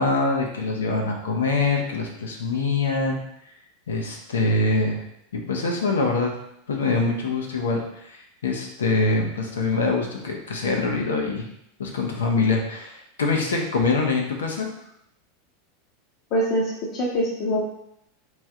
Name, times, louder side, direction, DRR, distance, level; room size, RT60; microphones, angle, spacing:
voice 1, 0.0-3.2 3.9-5.0 5.3-6.3 6.7-11.5 11.8-14.7, left 3 dB, 85° left, 1 dB, 0.8 m, -24 dB
voice 2, 16.3-17.6, equal, 50° left, -5 dB, 0.9 m, -24 dB
3.2 x 3.1 x 3.6 m, 0.77 s
hypercardioid pair, 95°, 0 cm